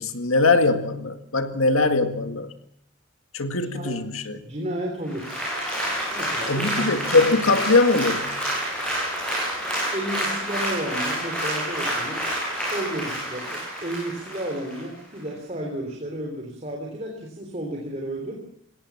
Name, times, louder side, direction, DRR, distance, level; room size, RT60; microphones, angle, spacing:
voice 1, 0.0-2.5 3.3-4.4 6.4-8.4, left 3 dB, 85° left, 7 dB, 1.9 m, -21 dB
voice 2, 3.5-4.0 4.4-5.4 6.1-6.9 9.9-12.2 12.6-18.4, right 1 dB, 30° right, 1 dB, 3.4 m, -32 dB
Applause, 5.1-14.8 15.3-15.4, equal, 5° left, 7.8 m, -28 dB
21.5 x 17.0 x 7.2 m, 0.69 s
head